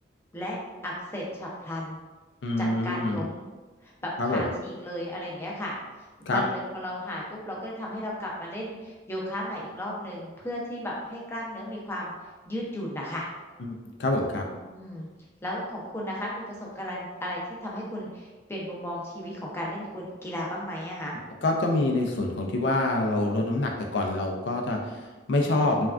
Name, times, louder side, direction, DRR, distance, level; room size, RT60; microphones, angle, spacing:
voice 1, 0.8-2.0 2.6-3.5 3.8-5.7 6.2-12.1 12.5-13.3 14.7-15.1 15.4-21.2 25.4-25.8, left 1 dB, 15° left, -3 dB, 0.5 m, -35 dB
voice 2, 2.4-3.2 4.2-4.5 6.3-6.4 13.6-13.7 14.0-14.4 21.4-25.9, left 2 dB, 80° left, 2 dB, 0.4 m, -26 dB
3.3 x 2.2 x 2.4 m, 1.2 s
head